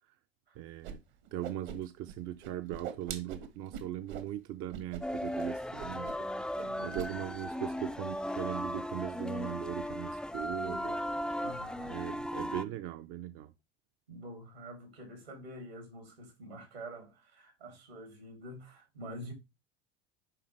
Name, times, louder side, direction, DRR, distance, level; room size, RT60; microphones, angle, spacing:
voice 1, 0.6-1.0 1.3-6.1 6.6-11.0 11.9-13.5, right 13 dB, 45° right, 0.6 m, -39 dB
Whoosh swoosh swish, 0.8-0.9 1.2-2.1 2.4-4.3 4.7-5.0 5.3-5.4 5.8-6.3 6.5-7.1, right 8 dB, 60° right, 1.3 m, -42 dB
sound 1, 5.0-12.6, left 1 dB, 5° left, 0.4 m, -37 dB
voice 2, 6.6-7.3 11.4-12.0 12.5-12.8 14.1-19.3, right 1 dB, 85° right, 3.2 m, -47 dB
10.0 x 3.6 x 3.2 m
figure-of-eight pair, 75°, 30 cm